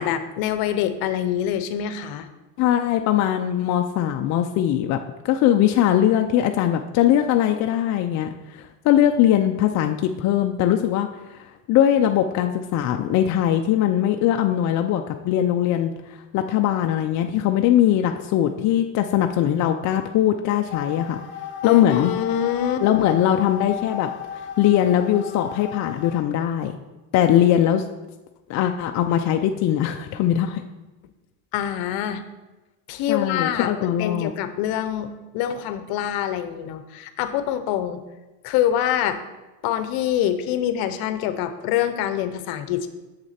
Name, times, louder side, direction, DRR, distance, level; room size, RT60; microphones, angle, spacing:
voice 1, 0.0-2.3 21.6-22.8 23.1-23.2 31.5-32.2 32.9-33.7 34.0-38.0 38.4-39.2 39.6-42.9, left 10 dB, 65° left, 10 dB, 0.9 m, -25 dB
voice 2, 2.6-5.0 5.2-11.1 11.7-15.9 16.3-21.2 21.6-22.1 22.8-24.1 24.6-26.7 27.1-27.8 28.5-30.6 33.1-34.3, left 11 dB, 45° left, 5 dB, 0.5 m, -20 dB
sound 1, 20.7-26.2, left 8 dB, 30° left, 1.3 m, -35 dB
7.7 x 6.7 x 4.2 m, 1.1 s
cardioid pair, 130°, 39 cm